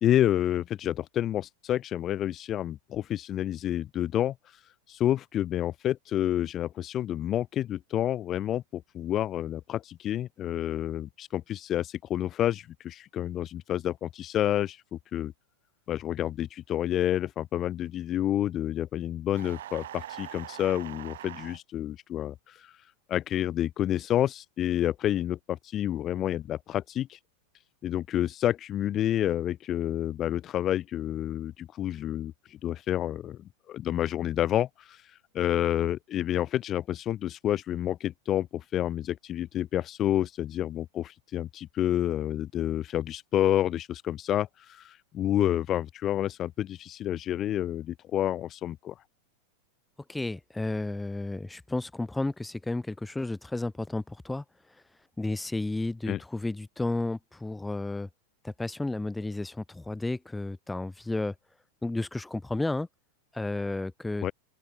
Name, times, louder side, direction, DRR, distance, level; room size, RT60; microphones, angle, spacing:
voice 1, 0.0-4.6 4.9-15.3 15.9-22.8 23.1-27.2 27.8-33.4 33.7-49.0 56.1-56.2 64.2-64.3, left 12 dB, 30° left, 1.5 m, -29 dB
sound 1, 19.3-21.6, right 13 dB, 60° right, 6.0 m, -42 dB
voice 2, 50.1-54.4 55.2-58.1 58.4-61.3 61.8-62.9 63.3-64.2, left 2 dB, 5° left, 2.3 m, -32 dB
open air
figure-of-eight pair, 90°, 0 cm